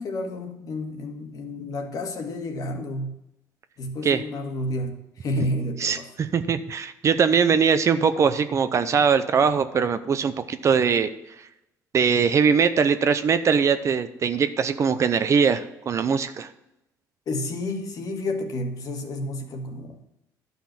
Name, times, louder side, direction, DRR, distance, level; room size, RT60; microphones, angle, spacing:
voice 1, 0.0-3.2 3.8-6.1 17.2-20.0, left 1 dB, 55° left, 4 dB, 1.7 m, -30 dB
voice 2, 5.8-11.1 11.9-16.5, right 6 dB, 40° right, 11 dB, 0.7 m, -21 dB
11.5 x 5.5 x 5.9 m, 0.89 s
cardioid pair, 100°, 8 cm